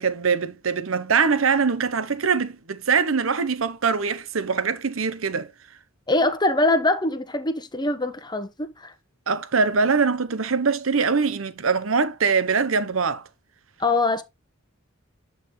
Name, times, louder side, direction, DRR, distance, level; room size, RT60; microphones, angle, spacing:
voice 1, 0.0-5.5 9.3-13.3, right 5 dB, 70° right, 0.9 m, -23 dB
voice 2, 6.1-8.9 13.8-14.2, left 2 dB, 20° left, 1.2 m, -23 dB
11.5 x 4.0 x 3.2 m
head